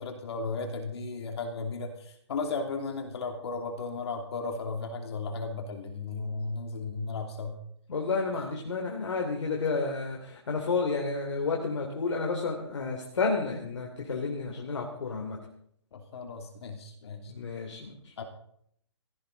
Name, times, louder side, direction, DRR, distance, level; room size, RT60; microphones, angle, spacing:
voice 1, 0.0-7.6 15.9-17.3 18.2-18.3, left 4 dB, 60° left, 4 dB, 2.9 m, -35 dB
voice 2, 7.9-15.4 17.3-18.1, left 4 dB, 75° left, 0 dB, 3.1 m, -31 dB
16.5 x 15.5 x 4.1 m, 0.69 s
hypercardioid pair, 150°, 15 cm